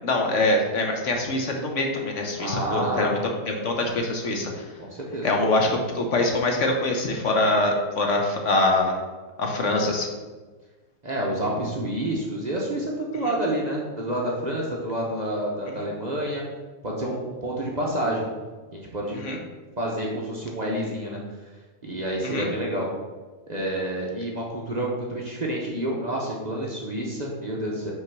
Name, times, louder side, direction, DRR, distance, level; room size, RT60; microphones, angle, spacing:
voice 1, 0.0-4.7 5.2-9.0 9.4-10.1 15.7-15.8 19.1-19.4 22.2-22.5, left 2 dB, 60° left, 2 dB, 1.2 m, -24 dB
voice 2, 2.4-3.2 4.8-5.4 11.0-16.4 16.8-18.3 18.7-19.2 19.8-21.2 21.8-22.9 23.5-27.9, right 1 dB, 35° right, -3 dB, 0.9 m, -28 dB
5.6 x 3.8 x 5.9 m, 1.3 s
omnidirectional pair, 1.5 m